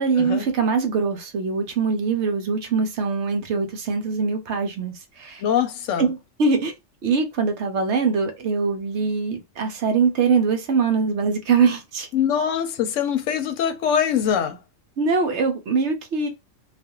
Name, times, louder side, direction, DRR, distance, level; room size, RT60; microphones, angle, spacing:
voice 1, 0.0-5.4 6.0-6.7 7.0-12.1 15.0-16.3, right 5 dB, 65° right, 0.9 m, -22 dB
voice 2, 5.4-6.1 12.1-14.6, left 8 dB, 70° left, 0.9 m, -23 dB
2.4 x 2.4 x 2.9 m
omnidirectional pair, 1.4 m